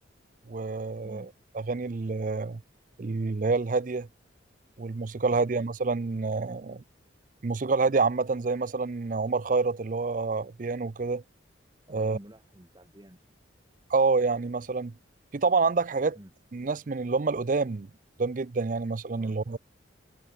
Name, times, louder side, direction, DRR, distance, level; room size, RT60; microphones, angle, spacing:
voice 1, 0.5-1.3 1.5-2.6 3.0-4.1 4.8-6.8 7.4-11.2 11.9-12.2 13.9-14.9 15.3-16.2 16.5-17.9 18.2-19.6, right 4 dB, 40° right, 0.5 m, -27 dB
voice 2, 11.9-13.2 16.1-16.3 19.2-19.4, equal, 20° right, 2.0 m, -50 dB
head